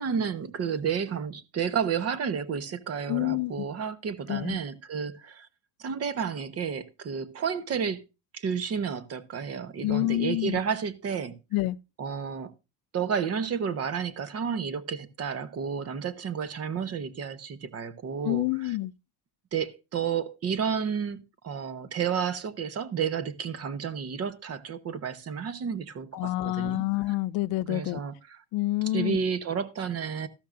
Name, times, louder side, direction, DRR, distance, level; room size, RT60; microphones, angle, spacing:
voice 1, 0.0-5.5 5.8-8.0 8.3-11.4 12.0-12.5 12.9-18.8 19.5-26.8 27.7-28.4 28.9-30.3, right 7 dB, 35° right, 1.1 m, -31 dB
voice 2, 3.1-3.7 4.3-4.6 9.8-10.6 11.5-11.8 18.2-18.9 26.1-28.0 28.5-29.2, left 17 dB, 55° left, 0.6 m, -28 dB
13.5 x 12.0 x 2.5 m
cardioid pair, 160°, 42 cm